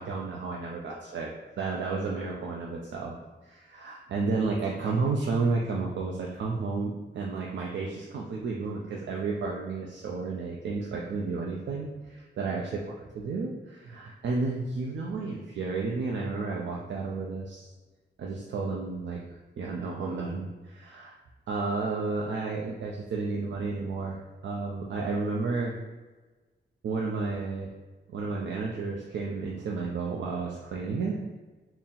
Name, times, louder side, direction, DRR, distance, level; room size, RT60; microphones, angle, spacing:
voice 1, 0.0-17.7 18.2-19.2 19.6-21.1 21.5-24.2 24.4-25.7 26.8-27.7 28.1-31.2, right 4 dB, 75° right, -2 dB, 0.4 m, -32 dB
3.7 x 2.0 x 4.2 m, 1.3 s
wide cardioid pair, 160°, 19 cm